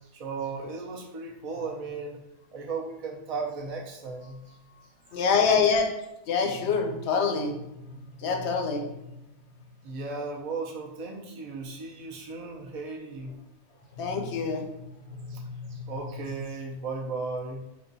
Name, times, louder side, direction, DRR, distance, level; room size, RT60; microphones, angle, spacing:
voice 1, 0.1-2.2 2.5-4.6 5.1-5.2 9.8-13.3 15.3-15.4 15.7-17.6, right 4 dB, 40° right, -1 dB, 0.6 m, -36 dB
voice 2, 5.1-5.9 6.3-7.5 8.2-8.8 14.0-14.6, left 5 dB, 65° left, 4 dB, 0.8 m, -25 dB
4.0 x 2.3 x 3.9 m, 0.89 s
omnidirectional pair, 1.4 m